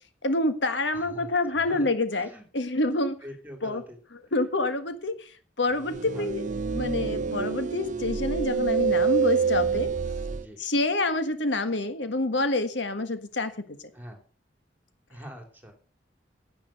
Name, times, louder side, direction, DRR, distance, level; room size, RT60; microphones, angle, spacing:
voice 1, 0.2-2.3 2.5-3.2 3.6-3.8 4.3-5.3 5.6-6.4 6.7-9.9 10.6-13.5 13.8-13.9, left 2 dB, 90° left, 9 dB, 1.5 m, -27 dB
voice 2, 0.9-2.4 3.2-4.0 6.1-6.3 10.2-10.6 13.9-14.2 15.1-15.7, equal, 10° right, 4 dB, 3.1 m, -44 dB
sound 1, 5.8-10.5, right 5 dB, 45° right, 0.5 m, -27 dB
10.5 x 8.9 x 6.5 m, 0.40 s
head